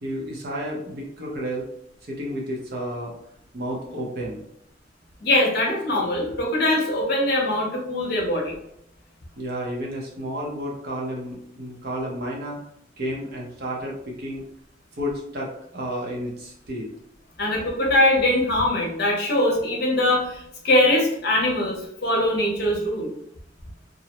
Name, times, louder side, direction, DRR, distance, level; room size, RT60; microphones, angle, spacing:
voice 1, 0.0-1.7 2.0-3.1 3.5-4.4 9.4-12.6 13.0-14.4 14.9-16.9, equal, 55° right, -2 dB, 0.7 m, -31 dB
voice 2, 5.2-8.5 17.4-23.1, left 1 dB, 60° left, -2 dB, 0.7 m, -22 dB
2.5 x 2.0 x 2.8 m, 0.74 s
head